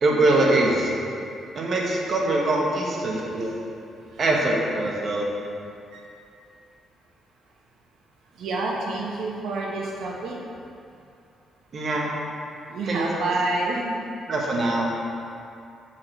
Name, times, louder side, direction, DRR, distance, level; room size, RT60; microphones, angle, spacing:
voice 1, 0.0-0.9 1.5-3.6 4.2-5.3 11.7-12.1 12.9-13.0 14.3-14.9, right 2 dB, 50° right, -2 dB, 1.2 m, -23 dB
voice 2, 3.0-3.4 4.1-4.2 5.9-6.0 8.4-10.4 12.7-14.0, right 2 dB, 75° right, -2 dB, 1.2 m, -28 dB
6.2 x 4.7 x 4.4 m, 2.6 s
cardioid pair, 90°, 0 cm